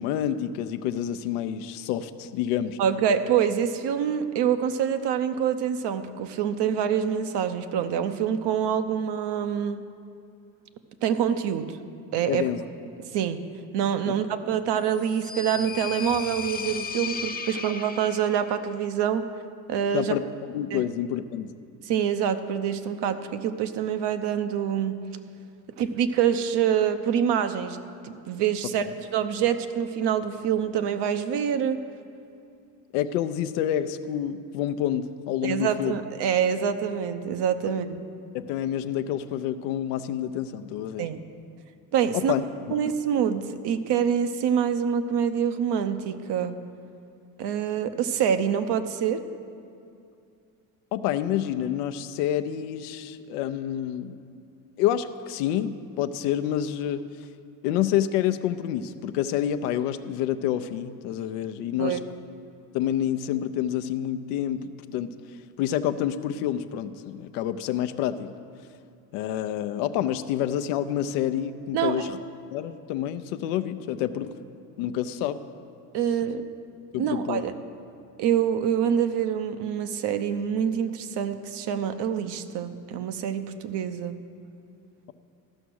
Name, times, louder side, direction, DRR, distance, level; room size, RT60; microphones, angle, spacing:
voice 1, 0.0-2.8 12.3-12.6 14.1-14.2 19.9-21.5 28.8-28.9 32.9-36.0 38.3-41.1 42.1-42.4 50.9-54.2 54.8-57.0 57.6-62.0 62.7-64.6 64.9-65.1 65.6-68.3 69.1-72.2 72.5-74.3 74.8-75.4 76.9-77.4, left 11 dB, 85° left, 10 dB, 0.6 m, -28 dB
voice 2, 2.8-9.8 11.0-11.7 12.1-12.4 13.1-13.4 13.7-19.3 19.7-20.1 20.7-20.8 21.9-25.0 25.8-27.8 28.0-28.9 29.1-31.8 35.4-38.0 41.0-41.2 41.9-42.3 42.7-46.6 47.4-49.2 61.8-62.0 71.7-72.1 75.9-76.4 77.0-77.5 78.2-84.2, right 8 dB, 65° right, 10 dB, 0.8 m, -26 dB
sound 1, 14.8-18.6, left 6 dB, 20° left, 0.7 m, -35 dB
13.5 x 5.8 x 6.3 m, 2.5 s
supercardioid pair, 65°, 45 cm